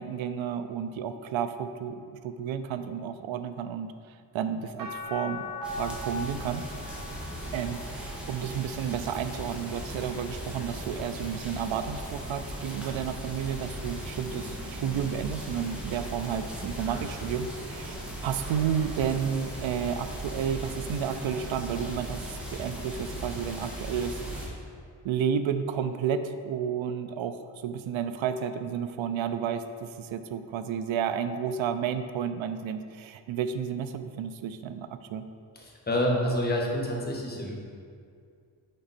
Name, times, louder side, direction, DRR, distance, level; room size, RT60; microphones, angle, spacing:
voice 1, 0.0-5.4 5.7-6.7 7.5-24.2 25.0-35.2, right 8 dB, 85° right, 10 dB, 0.5 m, -31 dB
sound 1, 4.8-11.1 11.7-13.0 14.4-14.5, left 1 dB, 45° right, 1.1 m, -42 dB
sound 2, 5.6-24.5, right 1 dB, ahead, 1.4 m, -38 dB
voice 2, 35.5-37.6, left 1 dB, 20° left, -2 dB, 1.2 m, -28 dB
6.5 x 5.1 x 4.2 m, 2.2 s
cardioid pair, 95°, 46 cm